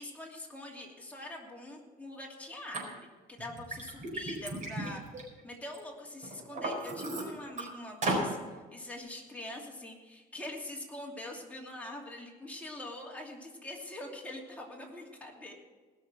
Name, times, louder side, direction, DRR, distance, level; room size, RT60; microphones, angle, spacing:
voice 1, 0.0-5.0 5.4-15.5, left 1 dB, 10° left, -1 dB, 2.7 m, -44 dB
Liquid, 2.7-2.8 3.4-5.8 6.2-7.6 8.0-8.3, right 2 dB, 45° right, 4.4 m, -35 dB
19.0 x 6.5 x 6.2 m, 1.4 s
cardioid pair, 110°, 17 cm